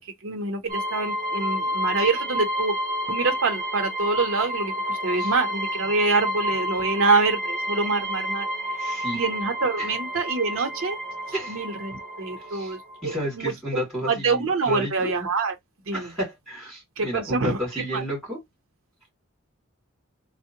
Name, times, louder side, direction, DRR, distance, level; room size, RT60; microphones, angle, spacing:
voice 1, 0.2-2.8 3.1-8.5 8.7-11.0 11.5-13.5 14.1-15.5 15.9-16.1 17.0-18.0, right 3 dB, 75° right, 0.7 m, -26 dB
sound 1, 0.7-13.2, equal, 40° right, 0.7 m, -30 dB
voice 2, 8.8-9.2 9.8-9.9 10.5-10.6 11.3-11.6 12.4-12.8 13.0-15.1 15.9-18.4, equal, ahead, 2.1 m, -32 dB
3.6 x 2.0 x 2.7 m
head